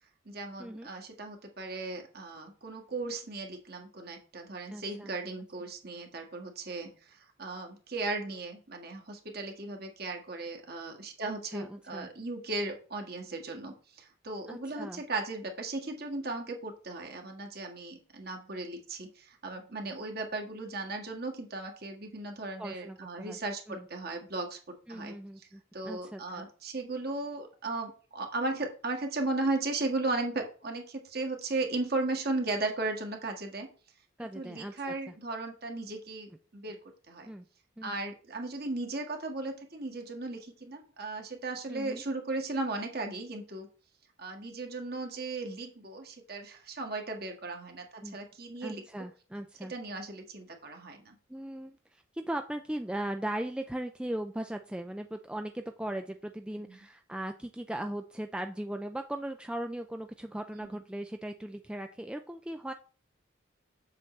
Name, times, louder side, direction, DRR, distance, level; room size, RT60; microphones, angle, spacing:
voice 1, 0.2-25.5 25.7-33.7 34.2-36.8 37.1-37.3 37.8-43.7 44.2-48.8 49.6-51.2 56.7-56.8 60.6-60.7, right 2 dB, 50° right, 3 dB, 1.6 m, -36 dB
voice 2, 4.7-5.1 11.3-12.1 14.5-15.0 22.6-23.4 23.7-23.9 24.9-26.4 34.2-34.9 37.3-37.5 37.8-37.9 41.7-42.0 48.0-48.2 48.6-49.7 51.3-62.7, right 1 dB, 5° right, 6 dB, 0.3 m, -38 dB
7.5 x 7.1 x 3.2 m, 0.39 s
head